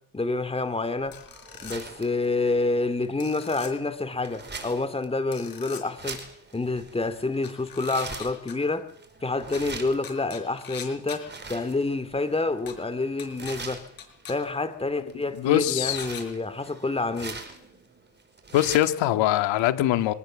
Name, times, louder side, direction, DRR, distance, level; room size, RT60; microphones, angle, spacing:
voice 1, 0.1-1.1 1.6-6.2 6.5-8.8 9.2-13.8 14.3-17.4, left 3 dB, 15° left, 2.4 m, -28 dB
sound 1, 1.0-19.1, right 3 dB, 25° right, 5.2 m, -44 dB
sound 2, 1.1-1.8 3.2-3.7 5.3-5.8 7.4-8.5 9.5-9.6 10.0-11.2 12.7-12.8 13.2-13.5 14.0-14.3 15.9-16.2, left 8 dB, 50° left, 5.5 m, -41 dB
voice 2, 15.4-16.0 18.5-20.1, left 13 dB, 85° left, 1.9 m, -22 dB
25.0 x 18.0 x 7.5 m
cardioid pair, 105°, 44 cm